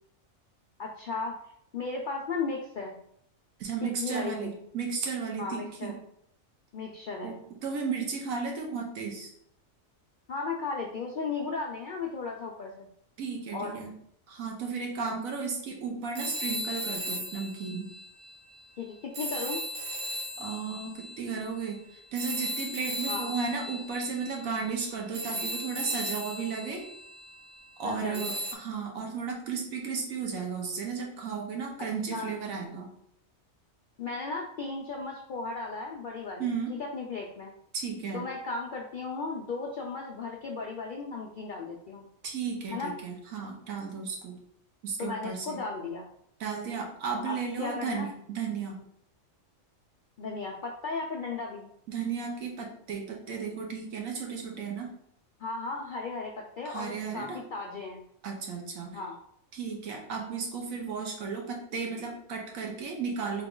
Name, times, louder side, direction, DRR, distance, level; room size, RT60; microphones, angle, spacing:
voice 1, 0.8-1.4 1.7-3.0 3.8-4.5 5.4-5.9 6.7-7.3 10.3-12.9 13.5-13.8 18.8-19.6 23.1-23.3 27.8-28.4 32.1-32.4 34.0-36.5 36.9-37.5 38.1-42.1 42.7-42.9 45.0-46.1 47.3-48.1 50.2-51.7 55.4-58.0 58.9-59.2, left 4 dB, 75° left, 0 dB, 0.4 m, -35 dB
voice 2, 3.6-6.0 7.2-9.3 13.2-13.9 14.3-17.9 20.4-21.8 22.1-26.8 27.8-32.9 36.4-36.8 37.7-38.2 42.2-44.4 44.8-45.6 46.4-48.8 51.9-54.9 56.6-57.4 58.2-59.0 59.5-63.5, right 5 dB, 90° right, 1 dB, 1.3 m, -34 dB
sound 1, 16.1-18.6 19.1-27.6 28.1-28.5, equal, 35° right, 0.5 m, -37 dB
3.7 x 2.9 x 3.7 m, 0.71 s
omnidirectional pair, 1.4 m